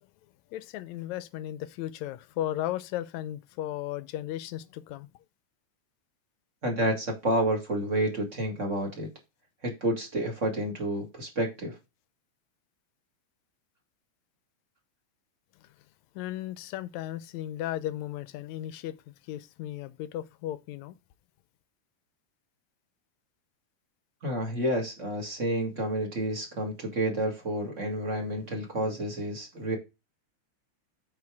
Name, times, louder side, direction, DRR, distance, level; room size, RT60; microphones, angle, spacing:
voice 1, 0.5-5.1 16.2-21.0, left 13 dB, 80° left, 1.9 m, -35 dB
voice 2, 6.6-9.1 9.6-11.7 24.2-29.8, right 1 dB, 25° right, 2.1 m, -29 dB
8.5 x 4.6 x 4.7 m
omnidirectional pair, 3.4 m